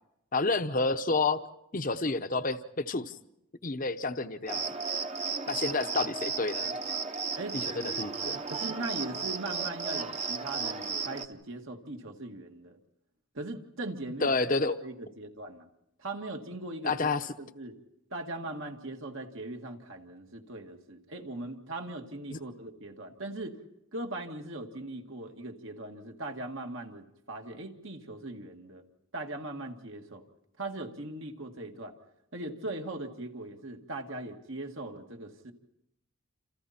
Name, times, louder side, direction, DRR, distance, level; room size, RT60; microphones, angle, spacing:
voice 1, 0.3-1.4 1.7-3.2 3.6-4.6 5.5-6.8 7.8-8.4 14.2-14.8 16.8-17.3 22.3-22.4, left 3 dB, 40° left, 9 dB, 0.9 m, -29 dB
Cricket, 4.5-11.3, right 5 dB, 30° right, 1.0 m, -34 dB
voice 2, 8.5-12.8 13.3-14.3 14.8-15.7 16.0-17.1 17.4-17.8 18.1-23.6 23.9-28.8 29.1-30.2 30.6-31.9 32.3-35.5, right 2 dB, 65° right, 3 dB, 2.1 m, -39 dB
28.5 x 28.0 x 4.4 m, 0.83 s
head